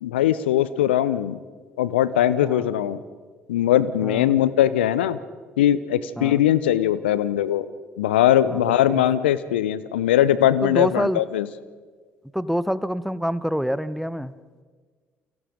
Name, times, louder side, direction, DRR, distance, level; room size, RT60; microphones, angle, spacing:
voice 1, 0.0-1.4 1.8-3.0 3.5-5.2 5.6-7.7 8.0-11.5, left 11 dB, 80° left, 17 dB, 0.8 m, -20 dB
voice 2, 4.0-4.4 6.2-6.4 8.5-9.0 10.6-11.2 12.3-14.3, equal, ahead, 15 dB, 1.2 m, -27 dB
28.5 x 24.5 x 5.2 m, 1.5 s
figure-of-eight pair, 45°, 6 cm